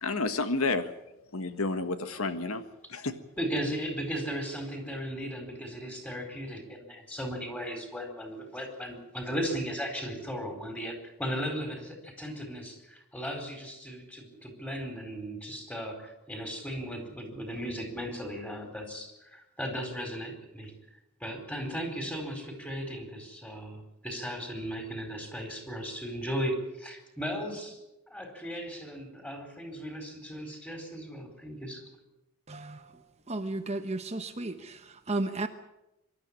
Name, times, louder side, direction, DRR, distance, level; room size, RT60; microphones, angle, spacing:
voice 1, 0.0-0.9 1.3-2.6 2.9-3.1, left 3 dB, 75° left, 9 dB, 1.5 m, -30 dB
voice 2, 3.4-20.7 21.2-27.8 28.1-31.8, equal, 5° left, 4 dB, 4.3 m, -36 dB
voice 3, 32.5-35.5, right 2 dB, 30° right, 7 dB, 1.0 m, -34 dB
24.0 x 12.5 x 9.9 m, 0.92 s
head